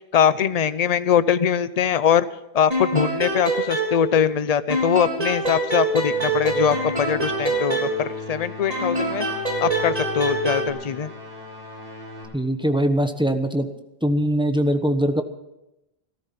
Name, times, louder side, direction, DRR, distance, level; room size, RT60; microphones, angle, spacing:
voice 1, 0.1-2.3 2.5-9.3 9.6-11.1, left 8 dB, 45° left, 14 dB, 0.7 m, -22 dB
sound 1, 2.7-4.4 4.7-8.3 8.7-10.7, right 2 dB, 35° right, 3.4 m, -25 dB
sound 2, 5.8-12.2, left 3 dB, 60° right, 6.9 m, -38 dB
voice 2, 12.3-13.7 14.0-15.2, equal, 5° right, 7 dB, 1.1 m, -21 dB
16.5 x 14.0 x 5.9 m, 0.91 s
omnidirectional pair, 1.1 m